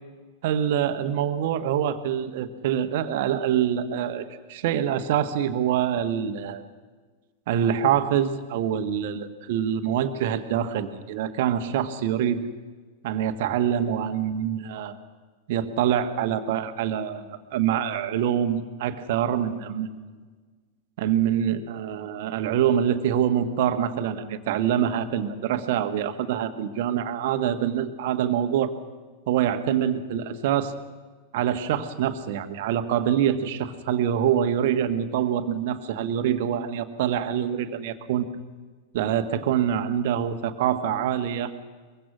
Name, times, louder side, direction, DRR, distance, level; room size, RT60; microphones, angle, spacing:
voice 1, 0.4-6.6 7.5-12.4 13.0-14.9 15.5-20.1 21.0-28.7 29.3-30.7 31.3-38.2 38.9-41.5, right 9 dB, 50° right, 9 dB, 1.6 m, -25 dB
23.0 x 22.5 x 6.3 m, 1.4 s
figure-of-eight pair, 90°, 0 cm